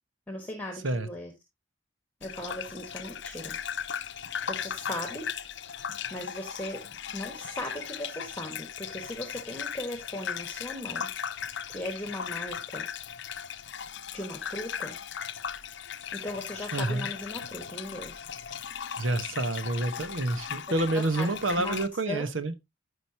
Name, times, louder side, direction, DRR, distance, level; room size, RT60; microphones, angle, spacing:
voice 1, 0.3-1.3 2.2-3.6 4.5-5.7 6.1-6.8 7.1-11.1 11.7-12.8 14.1-15.0 16.1-18.3 20.9-21.3 21.6-22.3, left 1 dB, 10° left, 1.4 m, -38 dB
Gurgling / Bathtub (filling or washing), 2.2-21.9, left 8 dB, 65° left, 0.6 m, -37 dB
voice 2, 16.7-17.1 19.0-22.5, right 2 dB, 90° right, 1.2 m, -28 dB
14.0 x 5.2 x 2.8 m
head